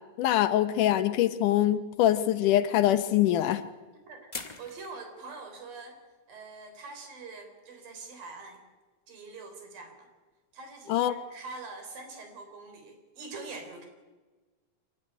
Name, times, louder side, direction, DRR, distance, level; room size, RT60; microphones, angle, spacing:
voice 1, 0.2-3.6 10.9-11.1, left 12 dB, 75° left, 11 dB, 2.2 m, -24 dB
sound 1, 1.6-1.7 4.3-5.0, left 3 dB, 35° left, 0.6 m, -40 dB
voice 2, 4.6-6.0 6.3-8.6 9.1-10.1 10.5-13.9, right 3 dB, 80° right, 6 dB, 5.5 m, -44 dB
25.0 x 17.0 x 9.9 m, 1.3 s
omnidirectional pair, 4.0 m